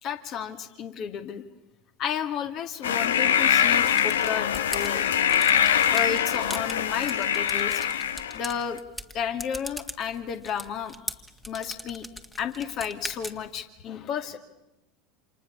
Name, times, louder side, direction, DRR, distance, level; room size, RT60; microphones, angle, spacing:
voice 1, 0.0-1.4 2.0-5.0 5.9-7.9 8.3-8.8 9.1-10.9 11.5-12.1 12.4-14.4, left 8 dB, 45° left, 8 dB, 2.5 m, -32 dB
sound 1, 2.8-8.6, left 9 dB, 70° left, 0.9 m, -23 dB
sound 2, 3.9-13.6, left 1 dB, 10° left, 1.9 m, -41 dB
29.0 x 27.5 x 7.2 m, 0.95 s
figure-of-eight pair, 75°, 0 cm